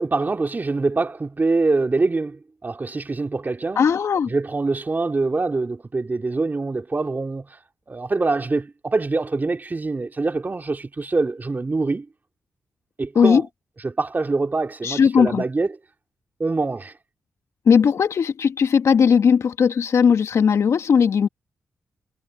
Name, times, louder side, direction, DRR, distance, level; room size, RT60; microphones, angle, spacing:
voice 1, 0.0-3.8 4.3-7.6 7.9-12.1 13.0-13.4 13.8-15.7 16.4-16.9, right 3 dB, 35° right, 2.9 m, -24 dB
voice 2, 3.8-4.3 13.2-13.4 14.8-15.4 17.7-21.3, left 6 dB, 70° left, 2.1 m, -18 dB
supercardioid pair, 45°, 5 cm